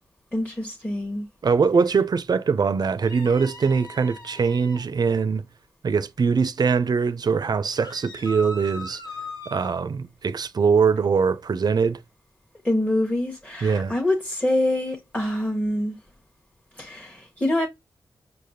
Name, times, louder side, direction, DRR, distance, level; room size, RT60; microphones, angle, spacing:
voice 1, 0.3-1.3 12.6-15.9 16.8-17.7, left 1 dB, 15° left, 1.0 m, -25 dB
voice 2, 1.4-5.5 5.8-9.0 9.5-12.0 13.6-13.9, right 5 dB, 50° right, 0.4 m, -22 dB
sound 1, 3.0-4.8 7.7-9.8, left 1 dB, 55° left, 1.2 m, -39 dB
4.9 x 2.1 x 2.7 m
cardioid pair, 50°, 9 cm